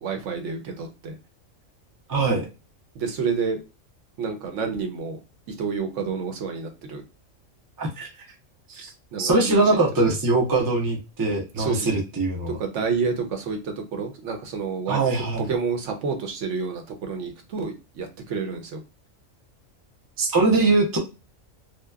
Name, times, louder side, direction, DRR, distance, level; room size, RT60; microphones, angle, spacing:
voice 1, 0.0-1.1 2.9-3.6 4.2-5.2 5.5-7.0 9.1-9.8 11.6-11.9 12.5-15.0 15.4-18.8, right 5 dB, 70° right, 5 dB, 0.9 m, -29 dB
voice 2, 2.1-2.4 7.8-8.1 8.7-8.9 9.2-12.6 14.9-15.4 20.2-21.0, right 3 dB, 35° right, 0 dB, 0.3 m, -22 dB
2.7 x 2.1 x 2.2 m, 0.29 s
omnidirectional pair, 1.4 m